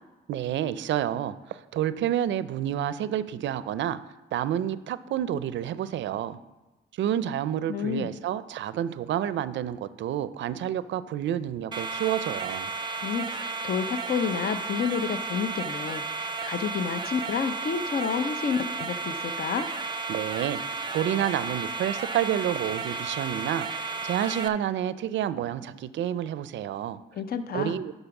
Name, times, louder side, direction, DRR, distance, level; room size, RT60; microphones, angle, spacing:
voice 1, 0.3-4.0 4.3-6.4 7.0-12.7 20.1-20.6 20.9-27.0 27.5-27.9, right 10 dB, 70° right, 15 dB, 0.5 m, -29 dB
voice 2, 7.7-8.1 13.0-19.7 27.1-27.8, left 6 dB, 50° left, 10 dB, 0.6 m, -30 dB
sound 1, 11.7-24.5, right 4 dB, 25° right, 0.6 m, -33 dB
11.0 x 3.9 x 5.9 m, 1.1 s
cardioid pair, 90°, 20 cm